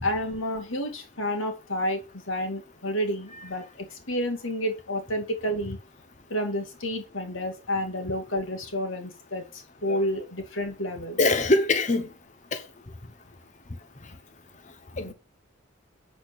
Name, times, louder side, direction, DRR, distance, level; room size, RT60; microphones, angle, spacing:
voice 1, 0.0-5.8 6.3-11.2, equal, 90° left, 2.3 m, -30 dB
voice 2, 11.2-12.1 12.5-12.6 15.0-15.1, left 2 dB, 40° left, 0.9 m, -23 dB
8.6 x 4.4 x 6.1 m
head